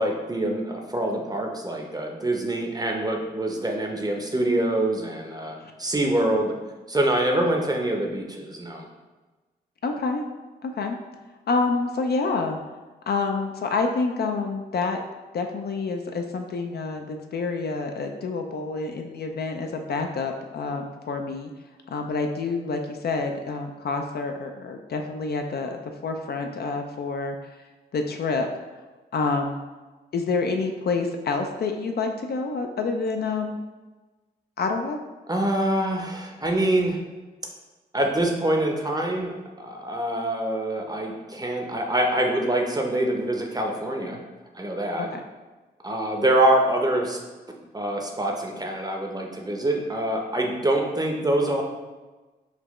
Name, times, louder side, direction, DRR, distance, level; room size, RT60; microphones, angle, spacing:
voice 1, 0.0-6.5 6.9-8.9 35.3-37.0 37.9-44.2 44.5-45.1 45.8-47.2 47.7-51.6, right 1 dB, 20° right, 1 dB, 0.6 m, -25 dB
voice 2, 9.8-10.2 10.6-11.0 11.5-12.6 13.1-15.0 15.3-21.5 21.9-27.4 27.9-28.5 29.1-29.6 30.1-33.6 34.6-35.0 45.0-45.2, left 4 dB, 55° left, 4 dB, 0.4 m, -28 dB
4.0 x 2.2 x 3.0 m, 1.2 s
supercardioid pair, 45°, 20 cm